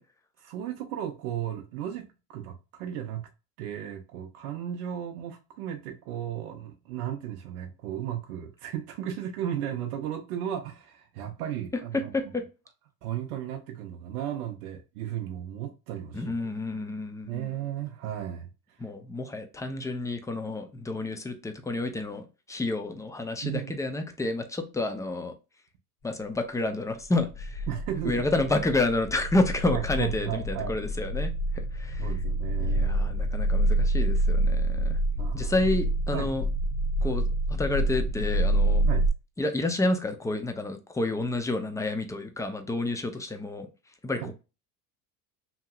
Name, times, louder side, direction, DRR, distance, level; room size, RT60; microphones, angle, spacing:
voice 1, 0.4-3.3 3.6-12.3 13.0-16.5 17.3-18.5 23.4-23.7 27.7-28.2 29.7-30.8 32.0-32.9 35.2-35.5 36.1-36.3 38.8-39.1 44.2-44.3, right 10 dB, 70° right, 0.7 m, -35 dB
voice 2, 11.9-12.4 16.1-17.6 18.8-25.3 26.0-27.7 28.0-31.3 31.7-32.1 32.6-35.0 35.3-36.4 37.0-38.9 39.4-43.7 44.0-44.3, left 2 dB, 5° left, 0.4 m, -29 dB
sound 1, 27.4-39.1, right 1 dB, 35° left, 0.7 m, -27 dB
2.9 x 2.7 x 2.3 m
hypercardioid pair, 75°, 46 cm